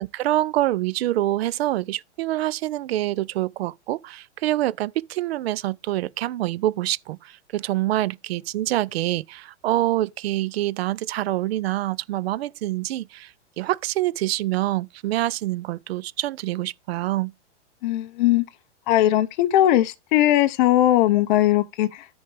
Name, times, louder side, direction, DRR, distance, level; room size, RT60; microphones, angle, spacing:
voice 1, 0.0-13.3 13.6-17.3, right 15 dB, 60° right, 0.5 m, -26 dB
voice 2, 17.8-18.5 18.9-22.1, left 14 dB, 45° left, 0.6 m, -19 dB
13.5 x 4.5 x 3.3 m
hypercardioid pair, 150°, 35 cm